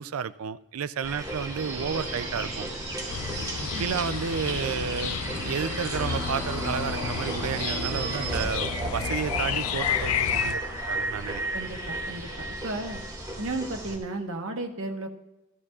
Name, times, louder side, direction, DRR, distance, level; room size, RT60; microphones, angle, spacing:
voice 1, 0.0-2.7 3.8-10.6 10.9-11.4, right 7 dB, 90° right, 14 dB, 0.4 m, -32 dB
sound 1, 1.0-14.0, right 1 dB, 20° right, 2.0 m, -34 dB
Subway metro underground, 1.6-8.4, right 3 dB, 40° right, 2.1 m, -37 dB
sound 2, 3.1-10.5, left 8 dB, 85° left, 0.5 m, -31 dB
voice 2, 11.5-13.0 13.4-15.1, right 2 dB, 65° right, 3 dB, 1.2 m, -34 dB
14.5 x 14.0 x 2.4 m, 0.99 s
head